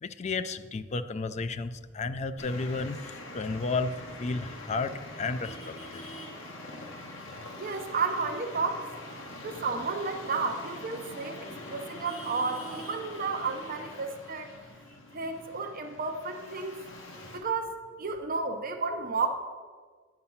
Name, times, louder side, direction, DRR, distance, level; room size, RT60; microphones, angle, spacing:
voice 1, 0.0-3.9 4.2-4.9 5.2-6.0, left 3 dB, 35° left, 12 dB, 0.4 m, -32 dB
Traffic noise roadway noise, 2.4-17.4, left 1 dB, 80° left, 1.6 m, -44 dB
voice 2, 7.6-11.4 11.7-14.5 15.1-16.8 17.3-17.7 18.0-19.4, right 4 dB, 45° right, 5 dB, 0.7 m, -32 dB
9.8 x 5.8 x 5.6 m, 1.6 s
head